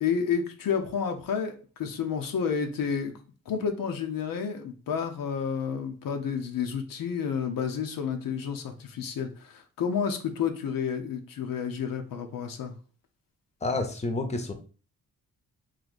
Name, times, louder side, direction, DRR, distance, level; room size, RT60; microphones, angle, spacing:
voice 1, 0.0-3.1 3.5-12.7, left 7 dB, 80° left, 5 dB, 0.7 m, -30 dB
voice 2, 13.6-14.5, left 2 dB, 20° left, 6 dB, 0.7 m, -29 dB
3.2 x 2.7 x 4.0 m, 0.37 s
cardioid pair, 90°, 34 cm